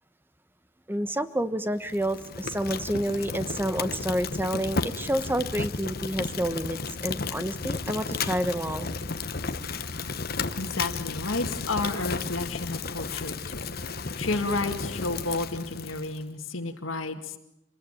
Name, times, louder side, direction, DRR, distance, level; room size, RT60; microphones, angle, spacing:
voice 1, 0.9-8.9 9.1-9.2, right 1 dB, 10° right, 12 dB, 1.1 m, -29 dB
Fire, 1.8-16.2, left 4 dB, 50° left, 1.2 m, -33 dB
voice 2, 10.6-13.7 14.2-17.4, left 2 dB, 80° left, 4 dB, 2.1 m, -31 dB
27.0 x 21.0 x 9.1 m, 0.89 s
head